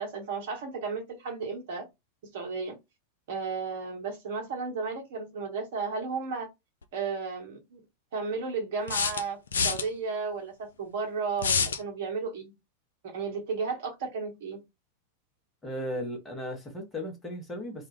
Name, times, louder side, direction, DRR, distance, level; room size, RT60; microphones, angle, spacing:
voice 1, 0.0-1.9 2.3-2.8 3.3-6.5 6.9-7.8 8.1-9.4 9.6-12.5 13.0-14.6, right 4 dB, 55° right, 1.0 m, -33 dB
sound 1, 6.8-6.9 8.9-9.9 11.4-11.8, left 6 dB, 70° left, 0.4 m, -27 dB
voice 2, 15.6-17.9, equal, 15° left, 0.9 m, -36 dB
2.4 x 2.2 x 3.2 m
figure-of-eight pair, 90°, 0 cm